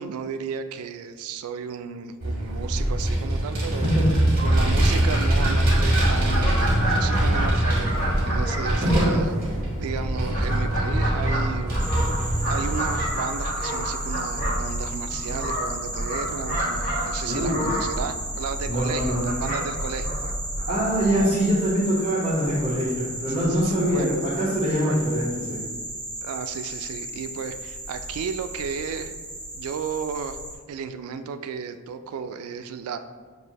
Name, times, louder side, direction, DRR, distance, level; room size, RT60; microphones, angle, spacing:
voice 1, 0.0-3.9 4.4-9.3 9.8-12.0 12.5-20.3 23.3-24.3 24.8-25.0 26.2-29.1 29.5-30.4 30.7-33.0, right 6 dB, 80° right, 9 dB, 0.3 m, -34 dB
Vehicle, 2.2-13.1, right 1 dB, 45° right, 1.4 m, -23 dB
Fowl, 4.1-21.4, right 1 dB, 35° left, 1.3 m, -29 dB
voice 2, 8.8-9.2 17.2-17.7 18.7-19.3 20.7-25.6, equal, 25° right, -11 dB, 1.0 m, -24 dB
sound 1, 11.8-30.5, right 1 dB, 5° left, 1.1 m, -35 dB
6.3 x 2.6 x 2.9 m, 1.5 s
head